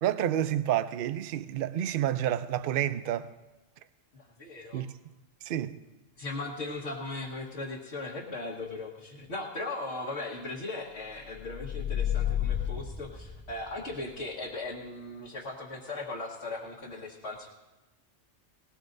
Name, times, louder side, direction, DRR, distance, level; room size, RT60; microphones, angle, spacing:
voice 1, 0.0-3.3 4.7-5.0 5.4-5.8, right 11 dB, 60° right, 0.6 m, -29 dB
voice 2, 4.1-4.8 6.2-17.5, left 2 dB, 60° left, 1.7 m, -38 dB
sound 1, 11.3-13.9, left 10 dB, 10° left, 0.7 m, -31 dB
19.0 x 18.0 x 2.6 m
omnidirectional pair, 1.3 m